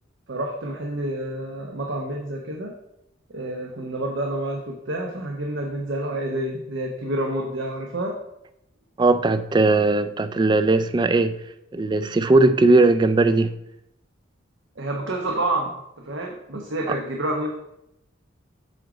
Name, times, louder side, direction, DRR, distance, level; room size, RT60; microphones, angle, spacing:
voice 1, 0.3-2.7 3.3-8.1 14.8-15.7 16.0-17.5, right 1 dB, 70° right, 0 dB, 0.9 m, -28 dB
voice 2, 9.0-11.4 11.7-13.6, right 2 dB, 20° right, 12 dB, 0.3 m, -18 dB
7.9 x 3.8 x 4.9 m, 0.82 s
head